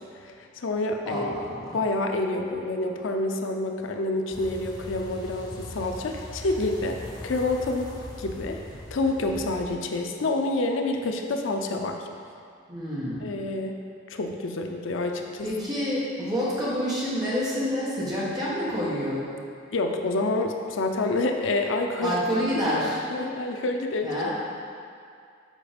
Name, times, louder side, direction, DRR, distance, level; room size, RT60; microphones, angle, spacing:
voice 1, 0.2-1.4 1.7-8.6 8.9-12.1 13.2-13.8 14.1-15.5 19.7-24.3, left 2 dB, 80° left, 3 dB, 0.5 m, -28 dB
voice 2, 1.0-1.8 12.7-13.3 15.4-19.3 22.0-23.0 24.0-24.3, equal, 20° right, -8 dB, 1.6 m, -28 dB
sound 1, 4.3-9.7, left 1 dB, 20° left, 0.6 m, -40 dB
7.3 x 4.2 x 5.2 m, 2.3 s
head